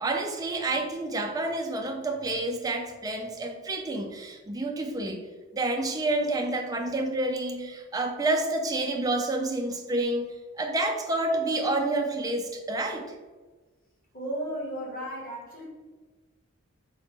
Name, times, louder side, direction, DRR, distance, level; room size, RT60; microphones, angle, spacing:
voice 1, 0.0-5.3 5.5-13.1, right 2 dB, 15° right, 3 dB, 0.3 m, -29 dB
voice 2, 14.1-15.7, right 1 dB, 40° left, -4 dB, 1.1 m, -34 dB
3.9 x 2.1 x 3.3 m, 1.3 s
head